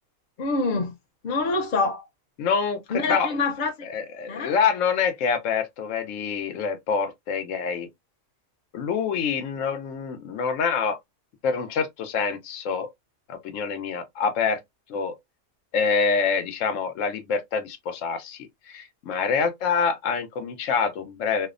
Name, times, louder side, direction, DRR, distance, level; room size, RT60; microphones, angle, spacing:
voice 1, 0.4-0.9 1.2-2.0 2.9-3.9 4.3-4.5, left 3 dB, 50° left, 0.6 m, -26 dB
voice 2, 2.4-3.3 3.8-7.9 8.7-11.0 11.4-12.9 13.3-14.6 14.9-15.1 15.7-21.5, left 6 dB, 85° left, 1.0 m, -26 dB
2.6 x 2.1 x 2.4 m
omnidirectional pair, 1.3 m